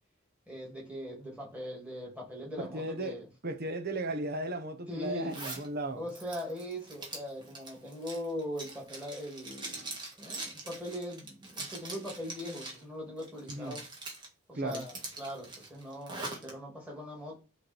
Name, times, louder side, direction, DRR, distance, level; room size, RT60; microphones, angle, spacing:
voice 1, 0.5-3.3 4.9-5.3 5.9-9.9 10.2-13.8 14.5-17.3, equal, 5° right, 2.8 m, -40 dB
voice 2, 2.7-3.2 3.4-6.0 13.5-13.8 14.5-14.9, right 2 dB, 50° right, 1.0 m, -35 dB
Zipper (clothing), 5.3-5.7 6.1-12.8 13.2-14.3 14.7-16.5, right 2 dB, 25° right, 1.8 m, -43 dB
9.3 x 3.3 x 4.5 m
head